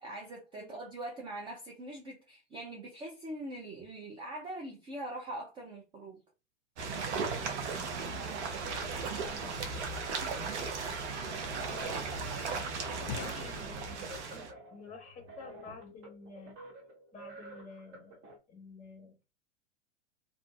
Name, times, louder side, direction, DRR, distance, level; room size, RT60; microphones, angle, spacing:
voice 1, 0.0-6.2, right 1 dB, 15° right, 0.4 m, -42 dB
sound 1, 6.8-14.5, right 4 dB, 65° right, 0.7 m, -36 dB
voice 2, 9.2-9.8 11.1-12.1 13.0-16.6 17.1-18.2 18.5-19.1, left 4 dB, 20° left, 1.2 m, -50 dB
sound 2, 9.6-14.2, left 6 dB, 55° left, 0.7 m, -49 dB
sound 3, 12.2-18.4, right 1 dB, 35° right, 0.9 m, -51 dB
2.5 x 2.4 x 2.3 m
hypercardioid pair, 100°, 36 cm